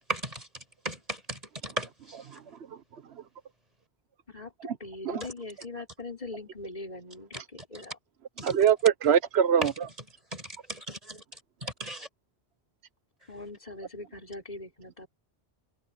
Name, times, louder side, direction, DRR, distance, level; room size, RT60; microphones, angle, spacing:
voice 1, 0.1-0.5 0.8-2.2 8.4-8.5 9.6-9.7 10.3-11.2 11.6-12.1, right 1 dB, 35° right, 6.8 m, -36 dB
voice 2, 4.8-8.0 13.3-15.1, left 2 dB, 40° left, 5.7 m, -41 dB
voice 3, 8.4-9.7, right 8 dB, 70° right, 1.1 m, -22 dB
omnidirectional pair, 1.1 m